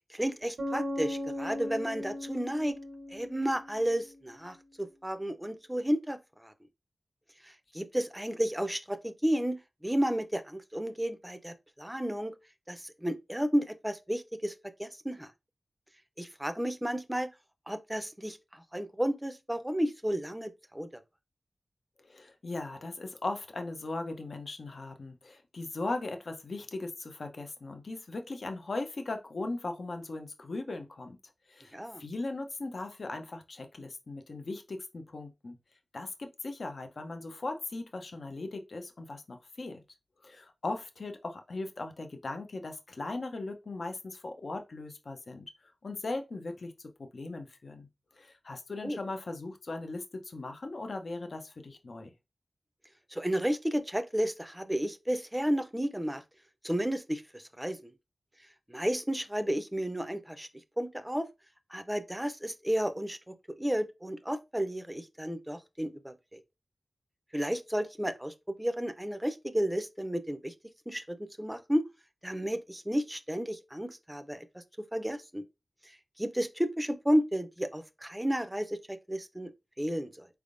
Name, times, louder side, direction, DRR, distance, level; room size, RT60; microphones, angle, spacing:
voice 1, 0.1-2.8 3.1-6.5 7.7-12.3 12.7-14.5 14.8-15.3 16.2-17.3 17.7-20.9 31.7-32.0 48.8-49.0 53.1-56.2 56.6-57.8 58.7-60.5 60.8-61.3 61.7-66.4 67.3-70.5 70.9-71.9 72.2-74.6 74.9-75.4 76.2-79.5 79.8-80.3, equal, 5° right, 0.5 m, -32 dB
Bass guitar, 0.6-4.2, left 1 dB, 85° right, 0.7 m, -38 dB
voice 2, 22.0-31.2 31.5-35.6 35.9-39.8 40.2-45.5 45.8-46.7 47.1-47.9 48.1-52.1, left 2 dB, 65° left, 0.7 m, -38 dB
4.4 x 3.4 x 2.5 m
wide cardioid pair, 105°, 0 cm